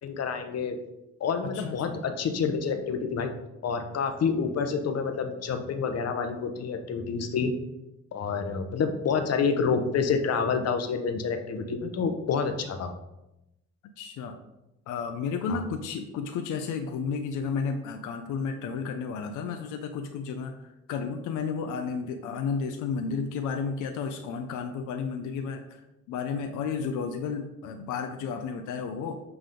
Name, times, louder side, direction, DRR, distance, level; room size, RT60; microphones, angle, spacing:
voice 1, 0.0-0.8 1.2-3.3 3.6-7.5 8.1-12.9 15.5-15.6, left 5 dB, 55° left, 6 dB, 0.9 m, -28 dB
voice 2, 1.4-2.0 14.0-14.4 14.9-25.8 26.1-29.2, left 5 dB, 90° left, 6 dB, 0.6 m, -32 dB
7.8 x 3.4 x 3.7 m, 0.93 s
cardioid pair, 90°, 30 cm